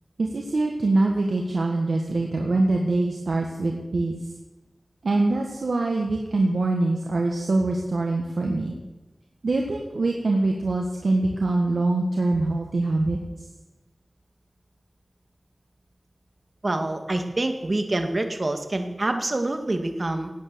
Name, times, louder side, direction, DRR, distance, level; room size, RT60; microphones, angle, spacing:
voice 1, 0.2-4.2 5.0-8.7 9.4-13.2, right 2 dB, 85° right, 1 dB, 1.7 m, -24 dB
voice 2, 16.6-20.3, right 2 dB, 50° right, 5 dB, 2.1 m, -26 dB
17.5 x 9.4 x 7.0 m, 1.1 s
wide cardioid pair, 55°, 0 cm